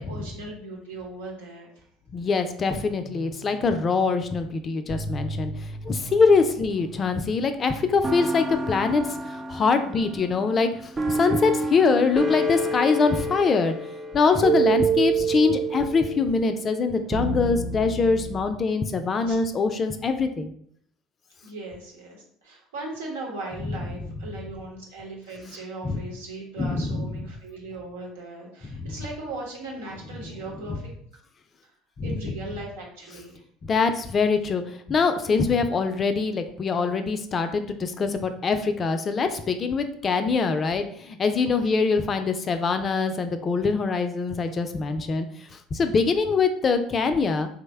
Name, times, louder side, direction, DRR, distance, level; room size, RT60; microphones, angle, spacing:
voice 1, 0.0-1.7 19.3-19.4 21.4-30.9 32.0-33.4, right 2 dB, 80° right, -2 dB, 1.1 m, -38 dB
voice 2, 2.1-13.7 14.1-20.5 23.6-23.7 25.8-26.0 26.6-27.2 28.6-28.9 30.7-30.8 32.0-32.4 33.6-47.5, left 4 dB, 40° left, 8 dB, 0.4 m, -24 dB
sound 1, 3.0-4.2 4.9-7.5 8.0-18.5, right 3 dB, 30° right, 0.4 m, -29 dB
3.1 x 2.1 x 3.4 m, 0.66 s
hypercardioid pair, 70°, 0 cm